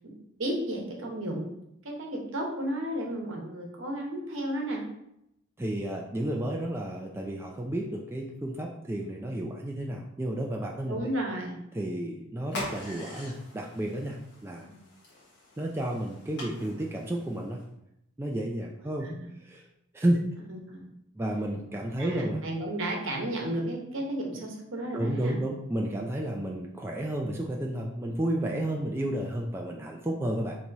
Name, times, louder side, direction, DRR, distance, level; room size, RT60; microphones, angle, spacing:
voice 1, 0.4-1.5 1.8-4.8 10.9-11.7 14.6-14.8 19.0-19.3 20.5-20.9 22.0-25.4, right 1 dB, 70° right, 0 dB, 1.0 m, -33 dB
voice 2, 5.6-11.1 11.7-14.7 15.6-17.6 18.2-19.1 19.4-19.7 19.9-20.3 21.2-22.4 24.9-30.6, right 1 dB, 10° right, -1 dB, 0.3 m, -31 dB
sound 1, 12.5-17.7, left 1 dB, 55° left, 1.1 m, -44 dB
3.4 x 3.0 x 4.0 m, 0.79 s
head